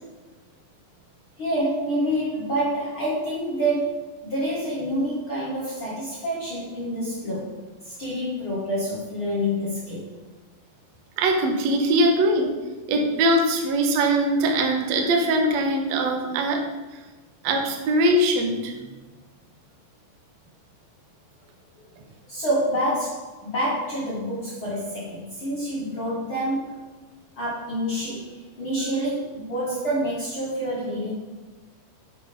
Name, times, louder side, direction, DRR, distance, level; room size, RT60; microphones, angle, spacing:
voice 1, 1.4-7.6 7.8-10.2 22.3-26.9 27.3-31.1, equal, 50° left, -6 dB, 1.5 m, -27 dB
voice 2, 11.2-12.5 12.9-16.6 17.4-18.7, right 1 dB, 90° right, 3 dB, 1.5 m, -21 dB
9.4 x 7.6 x 5.2 m, 1.2 s
omnidirectional pair, 5.3 m